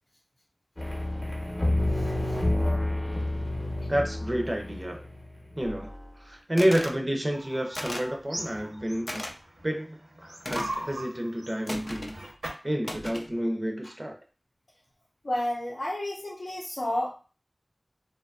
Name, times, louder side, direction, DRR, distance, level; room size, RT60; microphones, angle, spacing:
sound 1, 0.8-5.7, left 1 dB, 30° left, 0.7 m, -29 dB
voice 1, 1.9-2.4 13.8-13.9 15.2-17.1, left 1 dB, 85° left, -7 dB, 0.7 m, -31 dB
voice 2, 3.9-5.1 5.6-5.9 6.2-9.3 9.6-12.2 12.6-14.2, equal, 35° right, 2 dB, 0.4 m, -29 dB
sound 2, 6.6-7.0 7.7-8.2 9.1-9.3 10.4-10.8 11.7-12.2 12.8-13.3, left 1 dB, 50° left, 0.3 m, -36 dB
sound 3, 7.3-9.7 10.1-12.7, right 1 dB, 85° right, 0.7 m, -39 dB
2.6 x 2.3 x 2.2 m, 0.35 s
wide cardioid pair, 50°, 0 cm